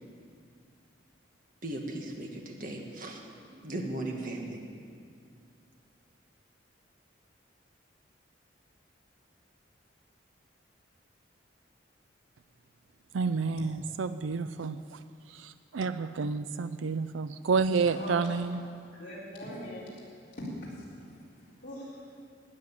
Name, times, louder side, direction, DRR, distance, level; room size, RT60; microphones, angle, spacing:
voice 1, 1.6-4.6, right 1 dB, 45° right, 1 dB, 1.7 m, -37 dB
voice 2, 13.1-15.0 15.3-18.6, right 4 dB, 85° right, 12 dB, 0.4 m, -30 dB
voice 3, 17.9-18.3 18.9-20.1 20.3-22.2, equal, 40° left, -8 dB, 3.9 m, -42 dB
13.0 x 9.2 x 9.5 m, 2.3 s
head